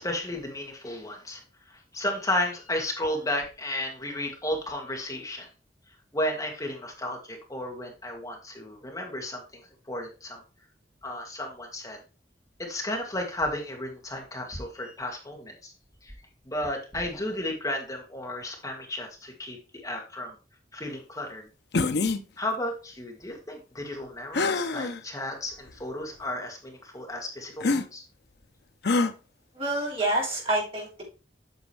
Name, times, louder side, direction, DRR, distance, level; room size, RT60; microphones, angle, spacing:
voice 1, 0.0-5.5 6.1-9.6 9.9-10.4 11.0-12.0 12.6-15.7 16.0-16.2 16.4-20.4 20.7-21.5 22.4-28.0, left 1 dB, 20° left, 1 dB, 1.8 m, -33 dB
sound 1, 21.7-22.2 24.3-25.0 25.7-25.8 27.6-27.8 28.8-29.1, left 3 dB, 65° left, 0.7 m, -25 dB
voice 2, 29.6-31.0, right 1 dB, 35° right, -3 dB, 3.8 m, -27 dB
8.4 x 6.1 x 3.3 m, 0.32 s
head